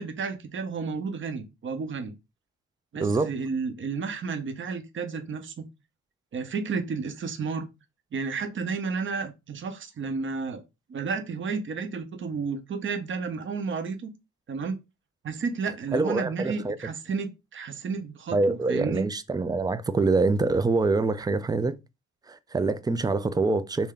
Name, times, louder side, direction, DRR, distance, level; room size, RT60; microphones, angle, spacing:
voice 1, 0.0-2.1 2.9-5.6 6.3-7.7 8.1-10.6 10.9-14.1 14.5-14.8 15.2-19.0, right 5 dB, 40° right, 0.8 m, -32 dB
voice 2, 15.9-16.8 18.3-21.7 22.3-23.9, right 3 dB, 15° right, 0.3 m, -25 dB
3.3 x 2.6 x 3.7 m
cardioid pair, 90°, 30 cm